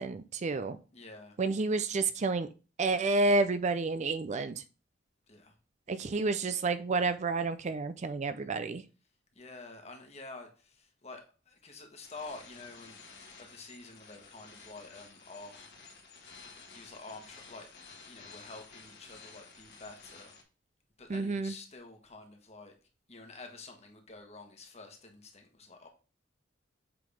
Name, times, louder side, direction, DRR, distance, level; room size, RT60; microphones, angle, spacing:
voice 1, 0.0-0.8 1.4-2.5 2.8-4.6 5.9-8.8 21.1-21.5, right 3 dB, 40° right, 12 dB, 0.4 m, -30 dB
voice 2, 0.9-1.4 5.3-5.5 9.3-13.0 13.4-15.7 16.7-17.7 18.1-20.4 21.0-22.7 23.1-25.9, left 3 dB, 35° left, 3 dB, 1.6 m, -49 dB
sound 1, 12.0-20.4, left 4 dB, 60° left, 2.0 m, -53 dB
7.7 x 3.8 x 5.1 m, 0.33 s
head